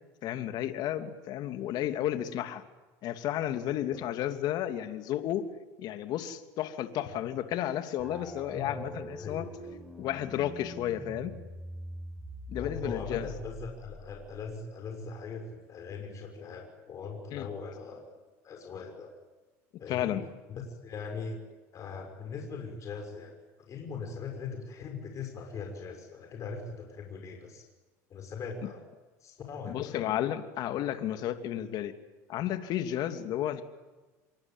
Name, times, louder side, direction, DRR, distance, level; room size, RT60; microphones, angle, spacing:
voice 1, 0.2-2.6 3.0-5.4 5.8-9.5 10.0-11.3 12.5-13.3 17.3-17.5 19.9-20.3 29.6-31.9 32.3-33.6, left 11 dB, 60° left, 8 dB, 2.8 m, -32 dB
sound 1, 8.0-14.6, equal, 5° right, 5.7 m, -44 dB
voice 2, 8.5-8.9 9.2-9.7 12.6-19.1 19.8-20.2 20.6-21.4 21.7-23.4 23.7-27.6 28.1-28.8 29.2-30.0, left 5 dB, 40° left, 2 dB, 6.3 m, -40 dB
26.5 x 23.5 x 9.2 m, 1.2 s
supercardioid pair, 95°, 8 cm